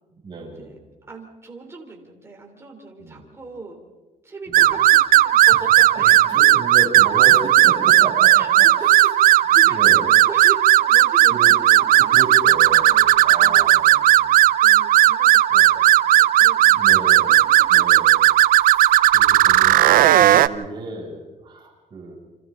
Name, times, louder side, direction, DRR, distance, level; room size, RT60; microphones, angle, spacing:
voice 1, 0.1-0.8 3.0-3.2 4.5-4.7 5.5-5.6 5.9-8.4 8.8-9.0 9.7-10.1 11.3-11.5 11.8-14.4 15.5-15.7 16.4-17.4 17.7-18.2 18.6-22.1, right 2 dB, 35° right, -2 dB, 7.0 m, -34 dB
voice 2, 1.1-3.8 4.2-6.2 8.3-12.2 12.5-13.9 14.6-18.0 19.6-19.8 20.3-20.5, right 3 dB, 15° right, 1 dB, 3.4 m, -39 dB
sound 1, 4.5-20.5, right 13 dB, 75° right, 0.6 m, -15 dB
30.0 x 26.0 x 3.9 m, 1.2 s
cardioid pair, 150°, 15 cm